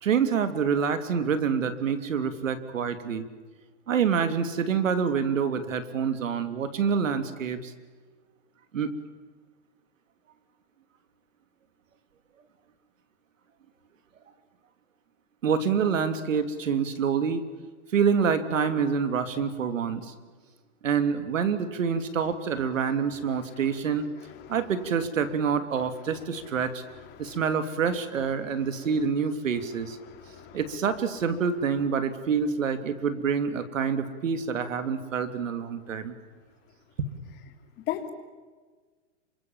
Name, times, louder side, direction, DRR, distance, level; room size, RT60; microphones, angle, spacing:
voice 1, 0.0-3.2 3.9-7.7 8.7-8.9 15.4-17.4 17.9-20.1 20.8-24.1 24.5-26.8 27.2-30.0 30.5-36.1 37.0-37.1, right 6 dB, 85° right, 10 dB, 3.0 m, -27 dB
voice 2, 23.3-23.6 24.3-24.6 26.6-26.7 27.2-27.4 30.0-30.6 37.9-38.1, left 12 dB, 25° left, 6 dB, 3.1 m, -37 dB
28.5 x 25.0 x 7.4 m, 1.4 s
hypercardioid pair, 155°, 38 cm